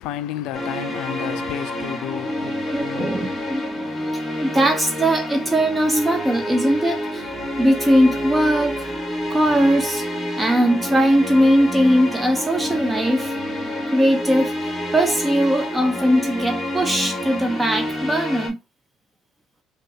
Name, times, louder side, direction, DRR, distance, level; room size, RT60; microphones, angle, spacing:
voice 1, 0.0-3.4, left 12 dB, 75° left, 0.4 m, -32 dB
sound 1, 0.5-18.5, left 1 dB, 10° left, 1.2 m, -28 dB
voice 2, 2.7-3.7 4.4-7.3 7.6-8.9 9.3-10.1 10.4-13.3 13.9-18.6, equal, 15° right, 0.4 m, -20 dB
3.7 x 2.3 x 2.6 m
cardioid pair, 120°, 0 cm